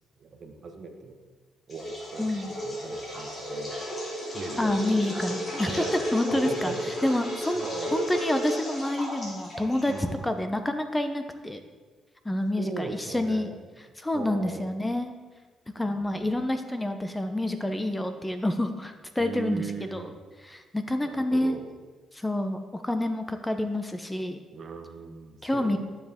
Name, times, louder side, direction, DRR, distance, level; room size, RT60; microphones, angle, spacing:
voice 1, 0.2-1.2 1.7-3.7 4.3-4.8 5.3-5.4 5.6-6.0 6.3-6.8 7.6-8.0 9.9-10.2 12.6-13.6 14.1-14.7 15.9-16.3 19.2-20.2 21.0-21.7 24.5-25.8, right 4 dB, 50° right, 4 dB, 1.3 m, -39 dB
sound 1, 1.7-10.2, equal, 40° left, 3.2 m, -33 dB
voice 2, 2.2-2.5 4.6-6.7 7.0-7.6 7.9-9.9 10.2-11.6 12.2-13.5 14.0-15.1 15.7-20.1 20.4-21.6 22.1-24.4 25.4-25.8, left 1 dB, 10° left, 7 dB, 0.7 m, -28 dB
12.0 x 7.3 x 3.6 m, 1.4 s
cardioid pair, 90°, 0 cm